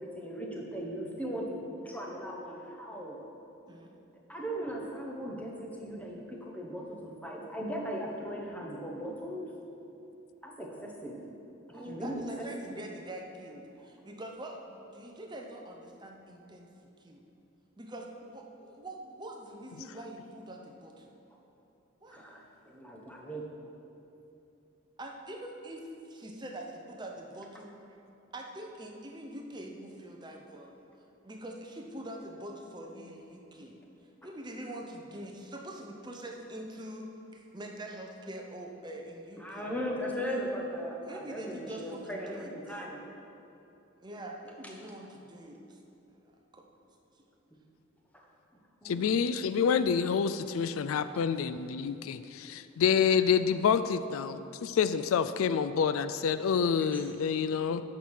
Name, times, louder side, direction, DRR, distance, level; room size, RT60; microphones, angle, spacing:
voice 1, 0.0-3.2 4.3-9.5 10.4-11.2 11.7-12.2 22.1-23.4 34.2-34.3 39.4-43.0 48.8-49.4 50.7-51.2 56.9-57.0 57.7-57.8, equal, 5° left, -2 dB, 1.1 m, -38 dB
voice 2, 3.7-4.0 11.7-16.7 17.0-17.2 17.8-21.1 22.0-22.2 25.0-27.7 28.3-30.7 31.2-33.8 34.2-39.7 41.0-42.5 44.0-45.8 46.5-46.7 47.1-47.2, right 1 dB, 20° right, 1 dB, 0.7 m, -44 dB
voice 3, 48.8-57.8, left 7 dB, 85° left, 13 dB, 0.3 m, -28 dB
9.1 x 5.8 x 6.4 m, 2.9 s
head